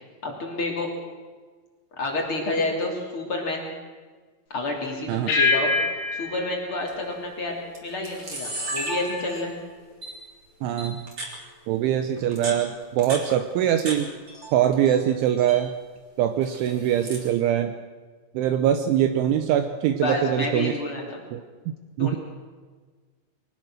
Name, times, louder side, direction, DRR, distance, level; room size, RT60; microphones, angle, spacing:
voice 1, 0.2-0.9 2.0-3.7 4.5-5.7 6.1-9.5 19.9-21.2 22.0-22.2, left 2 dB, 30° left, 0 dB, 3.2 m, -29 dB
sound 1, 5.3-8.0, left 4 dB, 85° left, 6.2 m, -26 dB
Camera, 6.9-7.1 7.7-7.8 8.0-9.6 10.0-10.1 10.8-11.3 12.2-14.0 14.3-15.0 15.3-15.6 16.4-17.3, right 2 dB, 25° right, 3.3 m, -34 dB
voice 2, 10.6-11.0 11.7-14.1 14.5-15.7 16.2-17.8 18.3-20.7 21.3-21.4 22.0-22.2, right 10 dB, 80° right, 8 dB, 3.0 m, -23 dB
23.0 x 19.5 x 6.3 m, 1.4 s
omnidirectional pair, 6.0 m